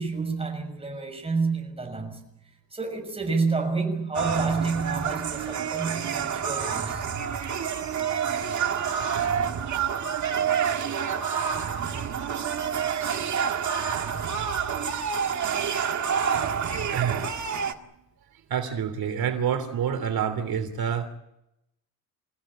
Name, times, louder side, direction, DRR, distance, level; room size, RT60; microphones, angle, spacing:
voice 1, 0.0-2.2 2.7-7.1, right 4 dB, 15° right, 6.5 m, -29 dB
sound 1, 4.1-17.7, right 7 dB, 50° right, 2.0 m, -28 dB
voice 2, 16.9-17.5 17.8-17.9 18.5-21.1, right 8 dB, 75° right, 3.2 m, -28 dB
29.5 x 16.0 x 9.0 m
wide cardioid pair, 170°, 36 cm